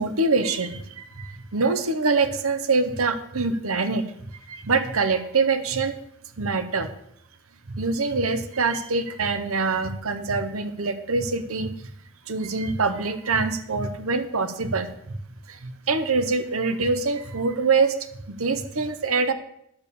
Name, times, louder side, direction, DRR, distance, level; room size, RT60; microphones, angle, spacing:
voice 1, 0.0-4.0 4.5-6.0 6.4-6.9 7.7-11.7 12.3-14.9 15.5-18.0 18.3-19.3, right 4 dB, 75° right, 10 dB, 0.9 m, -24 dB
10.5 x 6.9 x 6.8 m, 0.73 s
head